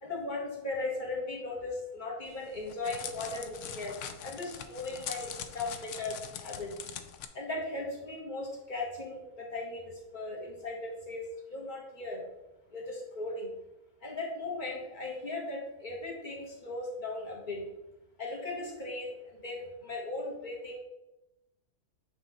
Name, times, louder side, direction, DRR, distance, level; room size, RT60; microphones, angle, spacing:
voice 1, 0.0-4.0 4.2-6.8 7.3-12.2 12.7-13.5 14.0-17.6 18.2-20.8, left 2 dB, 30° left, -2 dB, 1.5 m, -37 dB
Crackle, 2.3-7.3, left 9 dB, 65° left, 0.8 m, -42 dB
9.0 x 3.1 x 4.0 m, 0.95 s
omnidirectional pair, 1.6 m